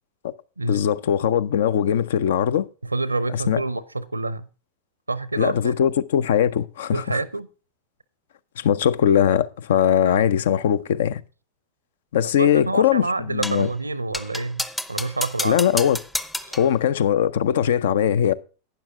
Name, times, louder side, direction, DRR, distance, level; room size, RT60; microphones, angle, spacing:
voice 1, 0.6-2.7 3.3-3.6 5.4-7.2 8.6-11.2 12.1-13.7 15.4-16.0 16.5-18.3, left 9 dB, 60° left, 0.6 m, -20 dB
voice 2, 2.8-4.5 5.1-5.7 6.9-7.5 12.4-15.6 16.4-16.6, right 3 dB, 80° right, 0.7 m, -28 dB
sound 1, 13.4-13.7 14.1-16.7, left 1 dB, 5° left, 0.7 m, -30 dB
12.0 x 9.5 x 3.5 m
figure-of-eight pair, 90°, 0 cm